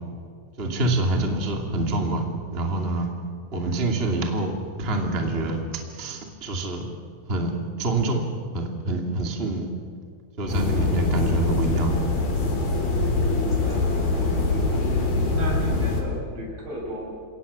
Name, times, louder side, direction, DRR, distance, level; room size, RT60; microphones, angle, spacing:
voice 1, 0.6-2.2 2.5-3.1 3.5-5.6 5.9-6.9 7.3-7.5 7.8-8.2 8.5-9.7 10.4-11.9, right 2 dB, 20° right, 3 dB, 2.3 m, -26 dB
sound 1, 10.5-16.0, left 2 dB, 55° left, 5.5 m, -23 dB
voice 2, 13.6-17.1, right 1 dB, 75° right, -1 dB, 8.6 m, -36 dB
30.0 x 18.0 x 7.0 m, 2.4 s
omnidirectional pair, 4.2 m